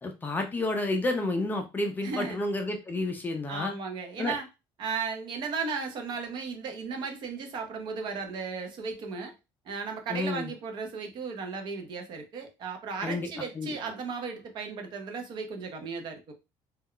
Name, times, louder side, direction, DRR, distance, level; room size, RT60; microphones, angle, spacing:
voice 1, 0.0-3.7 4.2-4.3 10.1-10.5 13.0-13.3 13.6-13.7, left 2 dB, 15° left, 0.4 m, -30 dB
voice 2, 2.0-2.4 3.5-4.5 4.8-9.3 9.7-16.3, right 5 dB, 45° right, 0.6 m, -35 dB
2.2 x 2.1 x 3.6 m
cardioid pair, 165°, 11 cm